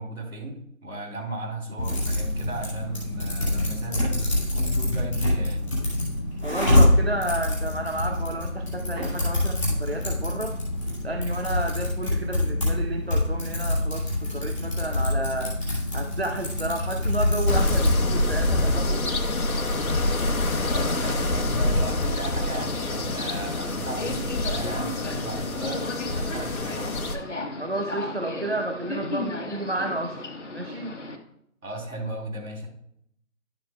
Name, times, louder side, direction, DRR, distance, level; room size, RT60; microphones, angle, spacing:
voice 1, 0.0-5.7 20.3-27.0 31.6-32.7, right 1 dB, 75° right, 1 dB, 3.2 m, -36 dB
Typing, 1.8-18.0, left 1 dB, ahead, 1.7 m, -25 dB
voice 2, 6.4-10.6 11.0-15.6 15.9-19.1 27.6-30.2 30.5-31.0, right 1 dB, 45° right, 5 dB, 0.6 m, -31 dB
sound 1, 17.5-27.2, left 2 dB, 75° left, 1.2 m, -26 dB
Subway metro underground, 22.3-31.2, left 2 dB, 55° left, 1.2 m, -35 dB
11.5 x 7.3 x 2.3 m, 0.73 s
figure-of-eight pair, 175°, 42 cm